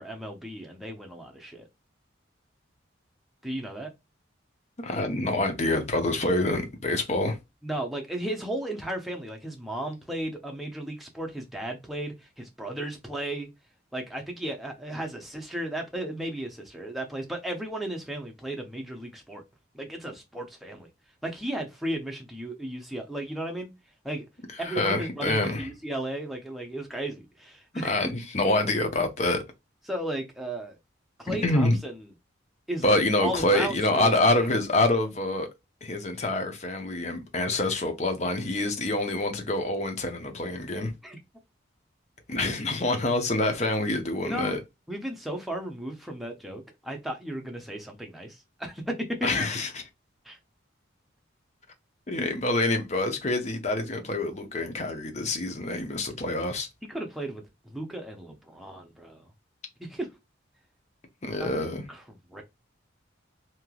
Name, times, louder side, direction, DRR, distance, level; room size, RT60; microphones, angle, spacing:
voice 1, 0.0-1.7 3.4-3.9 7.6-13.5 13.9-19.4 19.7-20.9 21.2-23.7 24.0-24.3 24.6-28.1 29.9-30.8 31.2-32.0 32.7-34.1 41.0-41.2 44.2-44.5 44.9-49.3 50.3-50.4 56.9-57.4 57.7-59.3 59.8-60.1 61.4-61.6 61.9-62.4, right 1 dB, ahead, 0.7 m, -35 dB
voice 2, 4.8-7.4 24.5-25.7 27.7-29.4 31.3-31.8 32.8-35.5 35.8-40.9 42.3-44.6 49.2-49.8 52.1-56.7 61.2-61.9, left 2 dB, 35° left, 0.7 m, -26 dB
3.2 x 2.9 x 2.3 m
head